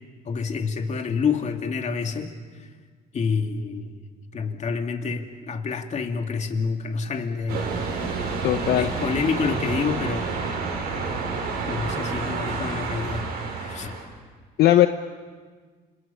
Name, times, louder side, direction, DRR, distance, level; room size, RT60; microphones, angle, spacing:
voice 1, 0.3-2.3 3.1-3.9 4.3-7.7 8.8-10.2 11.7-13.3 13.6-13.9, left 5 dB, 45° left, 5 dB, 2.4 m, -28 dB
sound 1, 7.5-14.1, right 4 dB, 75° right, 6.5 m, -29 dB
voice 2, 8.4-8.9 14.6-14.9, left 14 dB, 70° left, 9 dB, 0.8 m, -17 dB
30.0 x 27.5 x 5.7 m, 1.5 s
cardioid pair, 110°, 17 cm